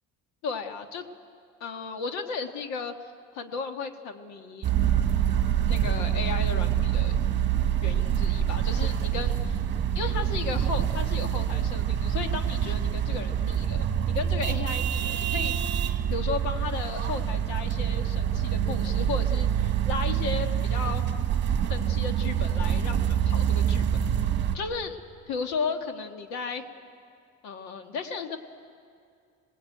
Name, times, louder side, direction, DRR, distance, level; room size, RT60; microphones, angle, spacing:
voice 1, 0.4-1.0 1.6-2.9 3.3-4.7 5.7-7.2 7.8-9.6 9.9-15.8 16.1-21.0 21.7-24.0 24.5-25.0 25.3-26.6 27.4-28.4, left 5 dB, 70° left, 6 dB, 1.8 m, -34 dB
sound 1, 4.6-24.6, right 9 dB, 40° right, 1.5 m, -26 dB
27.0 x 19.5 x 9.3 m, 2.3 s
cardioid pair, 170°, 29 cm